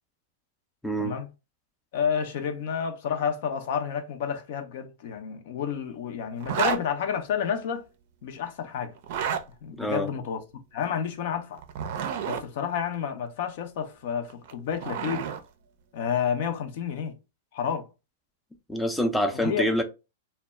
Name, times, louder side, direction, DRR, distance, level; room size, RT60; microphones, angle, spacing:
voice 1, 0.8-1.1 9.8-10.1 18.7-19.8, equal, 5° left, 0.4 m, -26 dB
voice 2, 1.9-7.9 8.2-8.9 9.6-10.4 10.7-11.6 12.2-15.3 15.9-17.2 17.5-17.9 19.3-19.7, left 7 dB, 60° left, 0.5 m, -30 dB
Zipper (clothing), 6.4-6.8 9.0-9.4 11.6-12.4 14.3-15.4, right 7 dB, 55° right, 0.4 m, -30 dB
2.1 x 2.0 x 3.4 m
hypercardioid pair, 120°, 0 cm